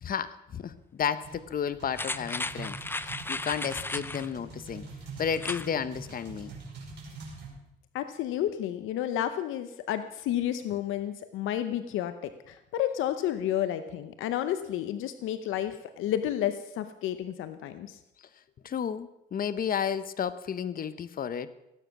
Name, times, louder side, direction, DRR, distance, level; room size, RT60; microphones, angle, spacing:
voice 1, 0.0-4.9 5.2-6.5 18.6-21.5, left 8 dB, 45° left, 13 dB, 0.8 m, -32 dB
sound 1, 1.2-7.5, right 3 dB, 60° right, 5.9 m, -44 dB
sound 2, 1.9-4.3 5.3-5.7 6.1-6.2, left 2 dB, 10° left, 0.6 m, -35 dB
voice 2, 7.9-18.0, left 11 dB, 90° left, 10 dB, 0.8 m, -31 dB
18.0 x 9.2 x 6.1 m, 0.91 s
cardioid pair, 90°, 20 cm